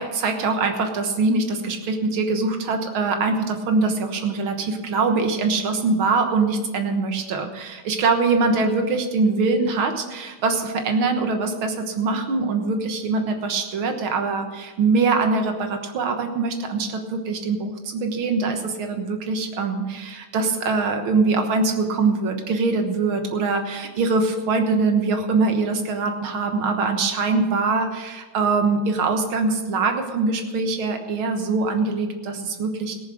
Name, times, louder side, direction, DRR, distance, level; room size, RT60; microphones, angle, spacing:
voice 1, 0.0-32.9, right 4 dB, 80° right, 5 dB, 2.2 m, -23 dB
17.0 x 7.3 x 6.4 m, 1.3 s
omnidirectional pair, 2.3 m